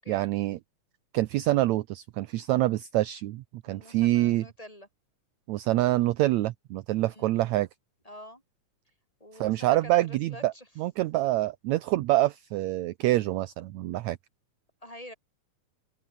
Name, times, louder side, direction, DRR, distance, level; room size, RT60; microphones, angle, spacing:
voice 1, 0.1-0.6 1.1-4.4 5.5-7.7 9.4-14.2, right 16 dB, 75° right, 1.8 m, -26 dB
voice 2, 3.7-4.9 7.0-7.4 8.1-8.4 9.2-10.7 14.8-15.1, equal, 10° left, 7.3 m, -47 dB
open air
omnidirectional pair, 3.6 m